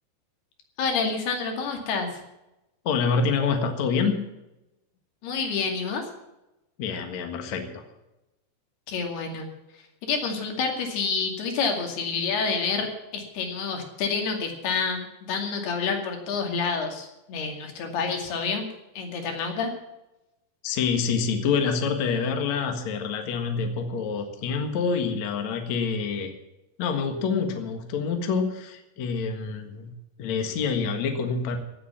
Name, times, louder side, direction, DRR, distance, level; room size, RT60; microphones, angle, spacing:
voice 1, 0.8-2.2 5.2-6.0 8.9-9.5 10.0-18.7 19.0-19.7, left 5 dB, 70° left, 3 dB, 4.3 m, -28 dB
voice 2, 2.9-4.3 6.8-7.8 20.6-26.3 26.8-29.9 30.2-31.6, left 5 dB, 55° left, 5 dB, 2.4 m, -26 dB
16.5 x 8.6 x 7.4 m, 0.93 s
omnidirectional pair, 4.8 m